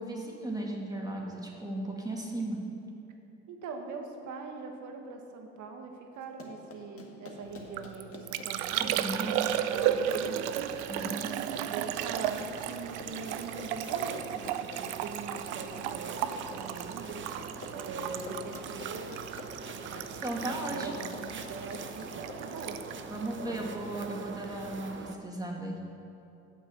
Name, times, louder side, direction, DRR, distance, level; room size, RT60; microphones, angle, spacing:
voice 1, 0.0-2.6 8.8-9.5 10.9-11.3 20.1-20.9 23.1-25.8, right 1 dB, 10° right, -2 dB, 2.2 m, -36 dB
voice 2, 3.5-10.4 10.8-10.9 11.7-17.2 17.7-19.2 19.7-20.9 21.2-22.8 23.5-23.7, right 4 dB, 65° right, 3 dB, 1.4 m, -42 dB
Run, 6.2-22.7, left 3 dB, 45° left, 1.9 m, -48 dB
Liquid, 7.5-24.2 24.4-24.9, right 11 dB, 90° right, 0.5 m, -35 dB
sound 1, 8.7-25.1, right 5 dB, 35° right, 0.9 m, -44 dB
8.5 x 6.3 x 7.6 m, 2.8 s
hypercardioid pair, 65°, 33 cm